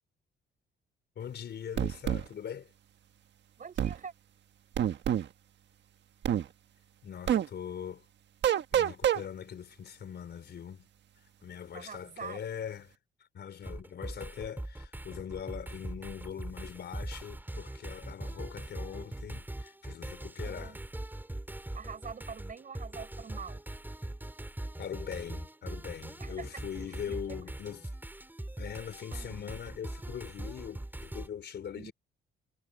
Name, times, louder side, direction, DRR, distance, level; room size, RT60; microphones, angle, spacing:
voice 1, 1.2-2.7 7.0-8.0 8.7-10.9 11.4-13.0 13.3-20.9 24.8-28.0 28.6-31.9, left 8 dB, 60° left, 4.5 m, -41 dB
sound 1, 1.8-2.2 3.8-4.0 4.8-5.3 6.2-6.4 7.3-7.5 8.4-9.2, right 10 dB, 65° right, 1.5 m, -26 dB
voice 2, 3.6-4.1 11.7-12.4 16.0-16.1 20.4-20.8 21.7-23.6 26.2-26.4 27.1-27.4 28.4-28.5 29.1-29.4 31.7-31.9, right 6 dB, 45° right, 4.7 m, -45 dB
sound 2, 13.6-31.3, right 1 dB, 10° right, 5.0 m, -41 dB
cardioid pair, 90°, 20 cm